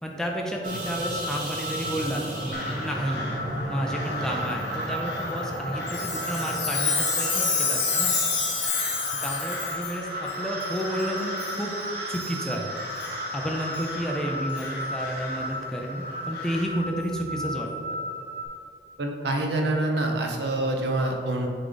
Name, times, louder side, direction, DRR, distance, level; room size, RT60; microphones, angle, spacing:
voice 1, 0.0-3.3 3.7-8.1 9.2-11.7 12.1-12.8 13.3-18.0, equal, 5° left, -1 dB, 0.5 m, -31 dB
sound 1, 0.6-18.5, right 1 dB, 50° right, 1.2 m, -34 dB
Crow, 2.5-16.7, left 2 dB, 65° left, 0.9 m, -37 dB
Chime, 5.9-10.0 10.6-10.7 11.4-11.6 12.1-12.3 13.0-13.1 13.7-13.8 14.6-14.7, left 5 dB, 85° left, 1.4 m, -27 dB
voice 2, 19.0-21.5, right 2 dB, 65° right, 2 dB, 0.8 m, -26 dB
6.5 x 3.7 x 3.9 m, 2.5 s
head